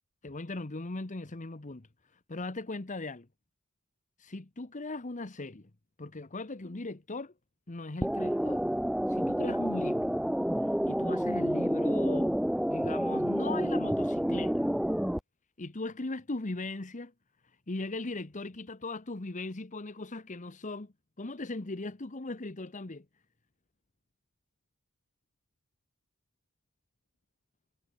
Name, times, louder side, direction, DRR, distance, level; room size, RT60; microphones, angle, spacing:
voice 1, 0.2-1.9 2.1-3.3 4.2-5.7 6.0-7.3 7.7-8.6 9.1-10.1 10.9-12.4 12.7-14.7 15.6-17.1 17.7-23.0, left 2 dB, 35° left, 1.1 m, -38 dB
sound 1, 8.0-15.2, equal, ahead, 0.3 m, -29 dB
head